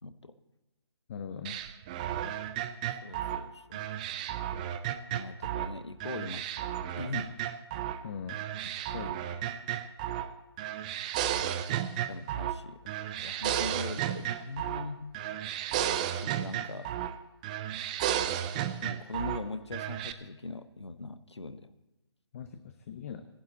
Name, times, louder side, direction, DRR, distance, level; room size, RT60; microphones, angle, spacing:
voice 1, 0.0-0.4 3.0-3.9 5.1-6.7 7.0-7.4 12.1-12.9 13.2-15.2 16.2-16.9 18.8-21.7, left 3 dB, 80° left, 11 dB, 1.1 m, -41 dB
voice 2, 1.1-1.6 8.0-8.4 8.9-9.2 22.3-23.2, left 7 dB, 35° left, 8 dB, 0.7 m, -40 dB
sound 1, 1.4-5.7 6.0-8.0 8.3-10.3 10.6-12.6 12.9-14.9 15.1-17.2 17.4-19.4 19.7-20.1, right 11 dB, 15° right, 0.4 m, -33 dB
14.5 x 11.0 x 4.0 m, 1.1 s
figure-of-eight pair, 140°, 14 cm